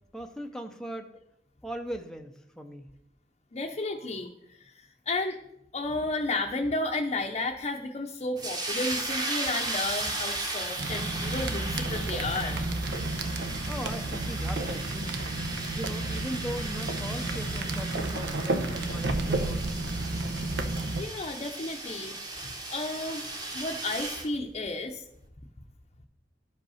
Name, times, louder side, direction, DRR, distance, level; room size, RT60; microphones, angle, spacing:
voice 1, 0.1-1.1 1.6-2.9 13.7-15.2 15.7-19.7, equal, 5° left, 4 dB, 0.5 m, -39 dB
voice 2, 3.5-5.4 5.7-12.6 21.0-23.2 23.5-25.0, left 2 dB, 35° left, 1 dB, 0.7 m, -33 dB
sound 1, 8.4-24.3, right 2 dB, 20° right, 1.2 m, -36 dB
sound 2, 10.8-21.0, right 2 dB, 75° right, 0.8 m, -32 dB
11.5 x 5.4 x 5.6 m, 0.82 s
head